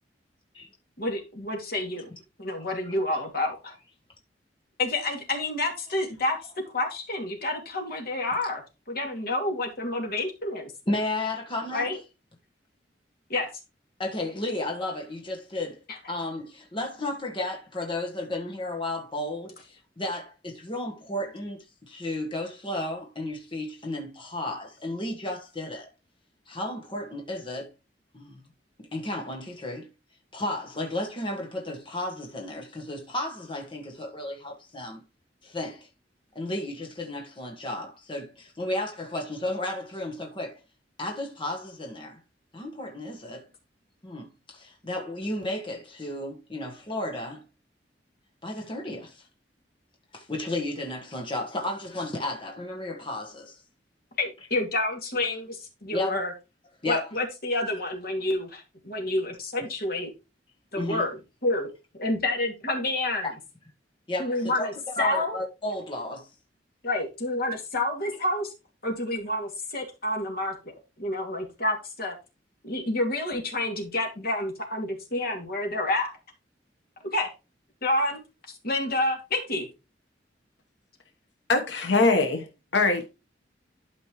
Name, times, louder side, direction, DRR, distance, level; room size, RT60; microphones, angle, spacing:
voice 1, 1.0-2.1 2.4-3.7 4.8-6.4 6.7-8.6 8.9-10.7 11.7-12.0 13.3-13.5 54.2-56.3 56.8-60.1 60.7-61.1 61.4-61.7 62.0-63.3 64.2-64.7 65.0-65.4 66.8-68.5 68.8-70.5 71.0-72.1 72.6-76.1 77.1-77.3 77.8-78.2 78.6-79.7, left 2 dB, 60° left, 2.8 m, -28 dB
voice 2, 10.9-11.9 14.0-15.8 16.1-25.9 26.5-27.7 28.1-28.4 28.8-29.9 30.3-35.0 35.4-35.9 36.3-40.6 41.0-42.2 42.5-43.5 44.0-47.4 48.4-49.2 50.1-53.6 55.9-56.2 56.8-57.1 60.8-61.0 63.2-63.3 64.1-64.7 65.0-66.3, left 1 dB, 30° left, 1.5 m, -33 dB
voice 3, 81.5-82.5 82.7-83.1, left 3 dB, 90° left, 1.3 m, -22 dB
12.0 x 5.3 x 3.2 m
head